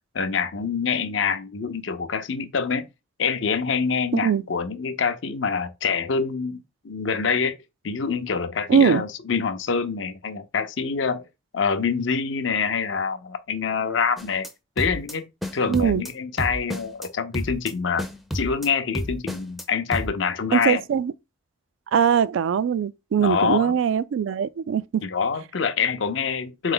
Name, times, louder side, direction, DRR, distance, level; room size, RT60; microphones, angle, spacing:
voice 1, 0.1-2.9 3.2-7.6 7.8-11.3 11.5-14.5 14.8-15.3 15.5-18.0 18.3-20.8 23.2-23.7 25.0-26.7, left 5 dB, 70° left, 0.6 m, -25 dB
voice 2, 8.7-9.0 15.7-16.0 20.5-21.1 21.9-25.0, right 7 dB, 75° right, 0.3 m, -21 dB
sound 1, 14.2-14.5 14.8-15.1 15.4-16.1 16.4-17.1 17.3-17.7 18.0-18.7 18.9-19.6 19.9-20.1, equal, ahead, 0.4 m, -30 dB
3.8 x 3.2 x 3.8 m
head